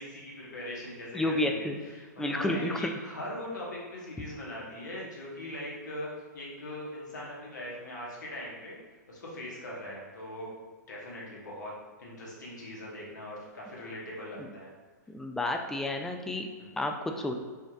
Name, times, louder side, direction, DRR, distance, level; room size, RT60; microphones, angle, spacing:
voice 1, 0.0-8.8 9.1-10.5 10.9-11.7 12.0-14.7 16.6-16.7, left 1 dB, 75° left, -4 dB, 1.4 m, -41 dB
voice 2, 1.1-1.8 2.2-2.9 14.4-14.5 15.1-16.5 16.8-17.3, left 1 dB, 5° left, 4 dB, 0.3 m, -30 dB
5.2 x 3.1 x 2.4 m, 1.5 s
hypercardioid pair, 115°, 10 cm